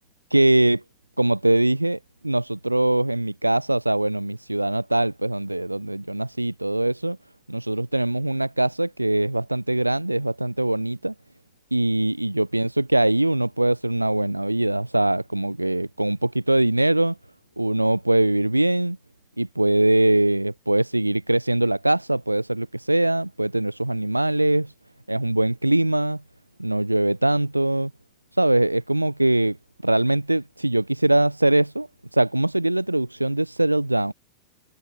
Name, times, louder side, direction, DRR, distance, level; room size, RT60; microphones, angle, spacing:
voice 1, 0.3-0.8 1.2-2.0 2.2-7.2 7.5-11.1 11.7-17.2 17.6-19.0 19.4-24.7 25.1-26.2 26.6-27.9 28.4-29.6 29.8-34.1, right 1 dB, 85° right, 0.5 m, -22 dB
figure-of-eight pair, 90°, 0 cm